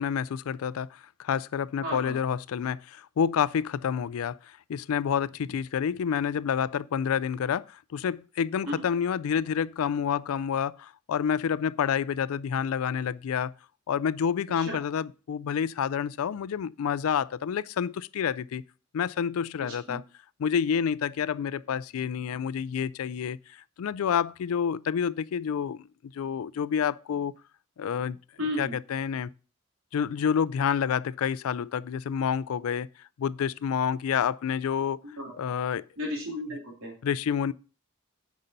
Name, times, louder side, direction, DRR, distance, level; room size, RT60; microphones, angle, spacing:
voice 1, 0.0-4.4 4.7-13.5 13.9-18.6 18.9-20.0 20.4-23.4 23.8-25.9 26.1-27.3 27.8-28.2 28.6-29.3 29.9-32.9 33.2-35.0 35.4-35.8 37.0-37.5, left 7 dB, 85° left, 0.4 m, -28 dB
voice 2, 1.8-2.2 8.7-8.8 14.6-14.8 19.6-20.0 28.4-28.7 35.0-35.4 36.0-36.9, left 1 dB, 70° right, 2.6 m, -34 dB
9.1 x 5.6 x 4.0 m
head